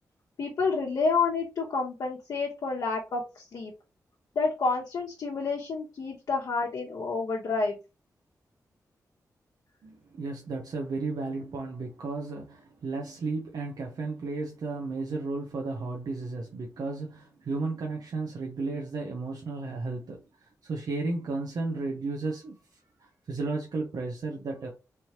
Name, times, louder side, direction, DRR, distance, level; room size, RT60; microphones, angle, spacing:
voice 1, 0.4-3.7 4.3-7.8, left 4 dB, 75° left, 0.9 m, -29 dB
voice 2, 9.8-24.7, right 3 dB, 75° right, 0.8 m, -34 dB
3.4 x 3.0 x 2.9 m
cardioid pair, 75°, 7 cm